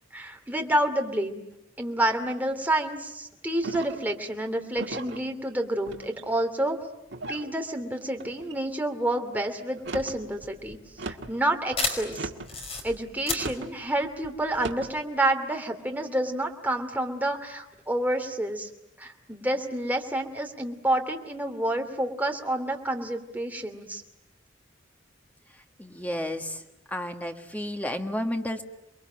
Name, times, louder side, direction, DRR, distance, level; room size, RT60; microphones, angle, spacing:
voice 1, 0.1-1.4 1.8-6.8 7.3-10.8 11.1-12.3 12.8-18.7 19.0-24.0, right 1 dB, 10° right, 4 dB, 2.7 m, -29 dB
sound 1, 3.6-4.1 4.8-5.2 5.9-6.4 7.1-7.5 8.2-8.6 9.7-10.2 11.0-11.4 12.1-12.6 13.4-13.7 14.5-14.9, right 2 dB, 60° right, 1.8 m, -37 dB
sound 2, 9.9-15.0, left 3 dB, 30° left, 5.0 m, -34 dB
voice 2, 25.8-26.6 26.9-28.6, left 1 dB, 10° left, 5 dB, 1.8 m, -31 dB
29.0 x 22.5 x 9.0 m, 0.88 s
head